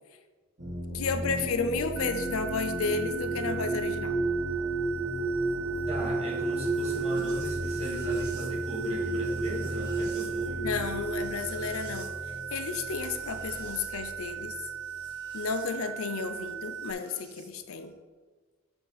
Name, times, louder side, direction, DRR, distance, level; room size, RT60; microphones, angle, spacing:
sound 1, 0.6-15.7 16.8-17.5, right 2 dB, 55° right, 2.0 m, -33 dB
voice 1, 0.9-4.2 10.6-12.1 12.5-14.7 15.3-17.9, left 4 dB, 65° left, 8 dB, 0.5 m, -32 dB
sound 2, 2.0-16.9, right 9 dB, 70° right, 0.4 m, -39 dB
voice 2, 5.9-10.7, right 1 dB, 30° right, -5 dB, 2.0 m, -38 dB
6.9 x 5.6 x 4.0 m, 1.4 s
head